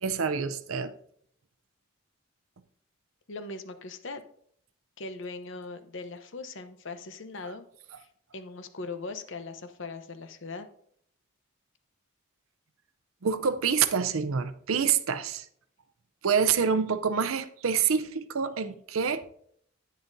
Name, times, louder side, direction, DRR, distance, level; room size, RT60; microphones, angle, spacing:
voice 1, 0.0-0.9 13.2-15.5 16.2-19.2, right 6 dB, 75° right, 0.6 m, -27 dB
voice 2, 3.3-4.2 5.0-7.7 8.0-8.1 8.3-10.7, left 3 dB, 60° left, 0.8 m, -40 dB
10.5 x 9.4 x 2.7 m
head